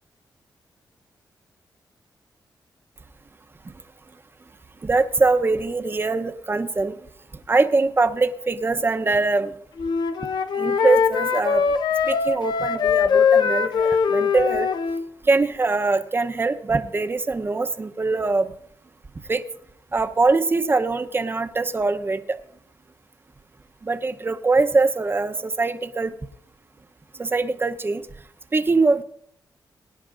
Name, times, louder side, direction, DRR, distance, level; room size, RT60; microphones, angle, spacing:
voice 1, 4.8-6.9 7.5-9.5 10.6-11.6 12.1-14.7 15.3-18.5 19.3-19.5 19.9-22.4 23.8-26.1 27.2-28.0 28.5-29.0, right 3 dB, 30° right, 8 dB, 0.8 m, -22 dB
Wind instrument woodwind instrument, 9.8-15.0, left 6 dB, 75° left, 0.7 m, -21 dB
23.0 x 10.0 x 2.5 m, 0.68 s
cardioid pair, 90°, 8 cm